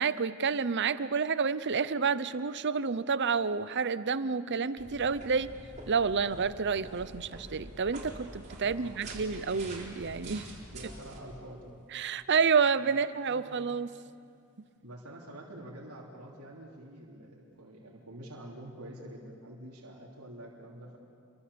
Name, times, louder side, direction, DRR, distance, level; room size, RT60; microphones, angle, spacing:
voice 1, 0.0-5.5 5.9-10.4 11.9-13.9, right 5 dB, 50° right, 14 dB, 0.7 m, -29 dB
sound 1, 4.8-11.2, right 1 dB, 35° right, 4.2 m, -46 dB
voice 2, 8.6-9.2 10.6-11.8 12.8-13.0 13.3-13.7 14.8-21.0, right 1 dB, 85° right, -4 dB, 3.3 m, -47 dB
28.0 x 24.0 x 7.0 m, 2.4 s
head